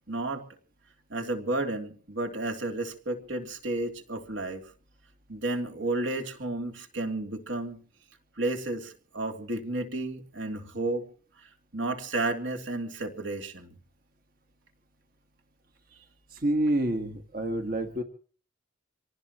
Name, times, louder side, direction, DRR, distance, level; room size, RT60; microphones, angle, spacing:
voice 1, 0.1-0.4 1.1-4.6 5.3-7.8 8.4-11.0 11.7-13.7, right 2 dB, 70° right, 3 dB, 3.0 m, -32 dB
voice 2, 16.3-18.0, right 1 dB, 45° right, 4 dB, 1.4 m, -28 dB
25.5 x 18.5 x 3.0 m, 0.42 s
head